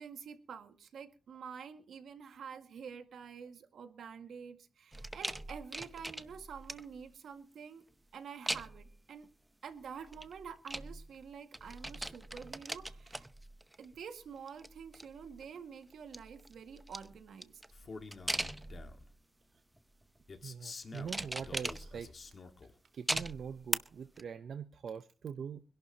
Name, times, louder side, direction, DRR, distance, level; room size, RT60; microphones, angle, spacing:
voice 1, 0.0-7.8 8.1-9.3 9.6-13.3 13.8-17.6, right 6 dB, 85° right, 6 dB, 1.9 m, -48 dB
rattling old phone, 4.9-7.0 8.5-9.0 10.0-11.3 11.5-14.0 14.4-15.4 15.9-19.1 19.8-20.2 20.9-22.2 23.1-23.7 24.2-24.3, right 1 dB, 10° right, 0.8 m, -40 dB
Male speech man speaking, 17.7-19.1 20.3-22.7, left 4 dB, 45° left, 1.8 m, -49 dB
voice 2, 20.4-22.1 22.9-25.6, right 7 dB, 70° right, 10 dB, 0.7 m, -43 dB
25.0 x 11.5 x 2.9 m, 0.38 s
wide cardioid pair, 120°, 0 cm